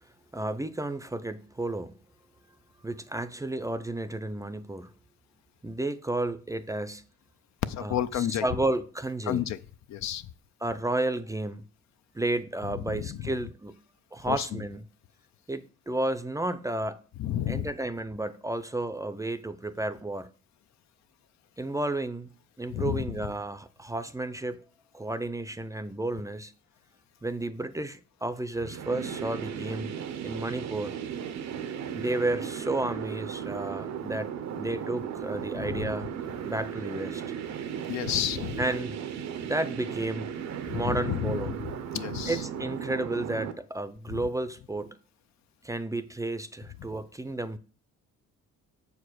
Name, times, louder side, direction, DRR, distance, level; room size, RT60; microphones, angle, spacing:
voice 1, 0.3-2.0 2.8-4.9 5.6-7.0 7.8-9.5 10.6-11.6 12.1-13.8 14.1-14.9 15.5-17.0 17.5-20.3 21.6-24.6 24.9-26.5 27.2-29.9 30.2-31.0 31.9-36.1 36.4-37.2 38.6-39.0 39.4-40.3 40.7-41.6 42.3-45.0 45.6-47.6, right 2 dB, 10° right, 0.5 m, -32 dB
voice 2, 7.7-8.4 9.3-9.6 9.9-10.2 12.9-13.3 14.2-14.5 17.2-17.7 22.7-23.2 35.5-35.8 37.9-38.6 40.7-41.4 41.7-42.4 44.1-44.2, left 11 dB, 65° left, 0.6 m, -31 dB
sound 1, 28.5-43.5, right 8 dB, 60° right, 0.7 m, -36 dB
6.6 x 4.9 x 6.3 m
cardioid pair, 90°, 30 cm